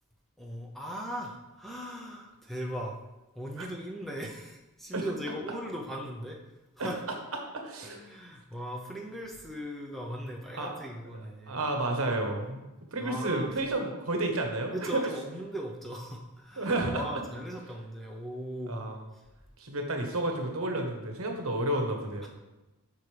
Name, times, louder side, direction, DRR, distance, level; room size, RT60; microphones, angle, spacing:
voice 1, 0.4-3.0 3.3-6.4 6.8-7.0 7.8-11.6 13.0-13.5 14.7-18.8 22.2-22.3, equal, ahead, -1 dB, 0.7 m, -38 dB
voice 2, 7.5-8.0 10.5-10.9 11.5-12.6 12.9-15.1 16.6-17.0 18.7-19.0 19.6-22.3, right 2 dB, 70° right, 3 dB, 1.3 m, -31 dB
8.0 x 6.0 x 3.4 m, 1.0 s
head